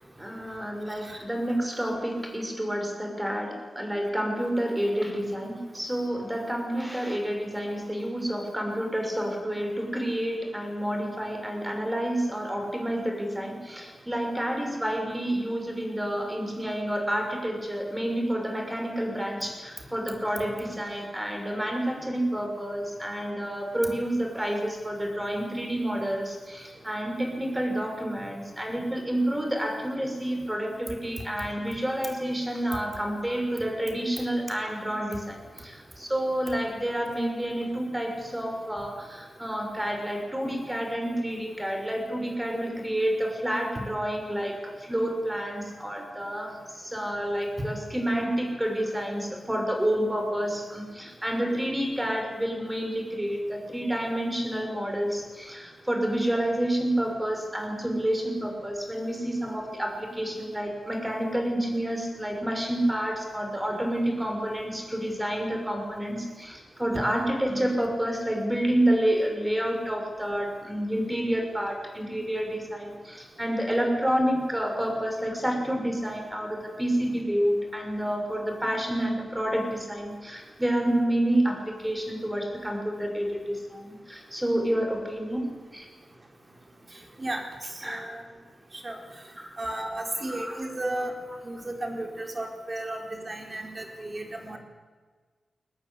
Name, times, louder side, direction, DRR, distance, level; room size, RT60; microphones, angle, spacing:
voice 1, 0.2-85.5 85.7-85.9 87.8-88.0 89.4-89.5 90.3-90.6, right 1 dB, 10° right, 3 dB, 6.0 m, -29 dB
voice 2, 87.2-88.2 88.7-89.0 89.6-91.1 91.4-94.6, right 1 dB, 25° right, 3 dB, 4.4 m, -34 dB
23.0 x 19.0 x 9.9 m, 1.4 s
wide cardioid pair, 125°, 0 cm